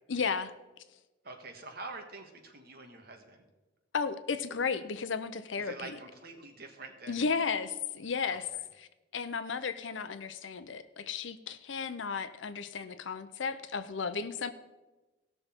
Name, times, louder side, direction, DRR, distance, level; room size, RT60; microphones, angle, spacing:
voice 1, 0.1-0.5 3.9-6.0 7.1-8.5 8.8-14.5, left 5 dB, 70° left, 12 dB, 0.6 m, -34 dB
voice 2, 1.2-3.5 5.6-7.3 8.3-8.4, right 3 dB, 50° right, 3 dB, 1.5 m, -46 dB
17.0 x 6.5 x 4.5 m, 1.1 s
head